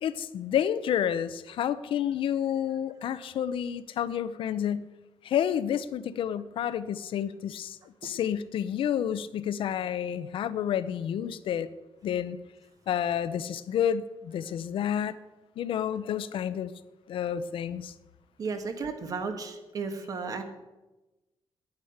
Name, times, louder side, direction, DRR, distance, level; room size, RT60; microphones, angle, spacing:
voice 1, 0.0-4.9 5.2-11.7 12.0-12.4 12.9-15.2 15.6-16.7 17.1-17.9, left 9 dB, 70° left, 15 dB, 0.7 m, -30 dB
voice 2, 18.4-20.4, right 4 dB, 40° right, 7 dB, 1.5 m, -34 dB
10.5 x 9.7 x 7.9 m, 1.1 s
wide cardioid pair, 175°, 9 cm